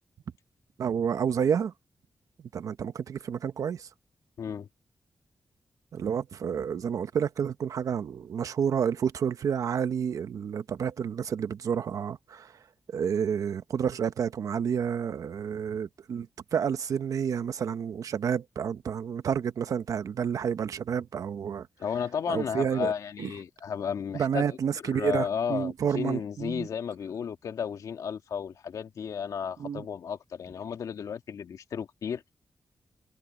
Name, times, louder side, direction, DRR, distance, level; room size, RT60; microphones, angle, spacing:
voice 1, 0.8-1.7 2.5-3.9 5.9-12.5 12.9-21.7 22.3-22.9 23.2-23.3 24.1-26.7 29.6-29.8, right 7 dB, 80° right, 1.0 m, -30 dB
voice 2, 4.4-4.7 21.8-24.6 24.8-32.2, left 7 dB, 80° left, 2.1 m, -33 dB
wide cardioid pair, 100°, 6 cm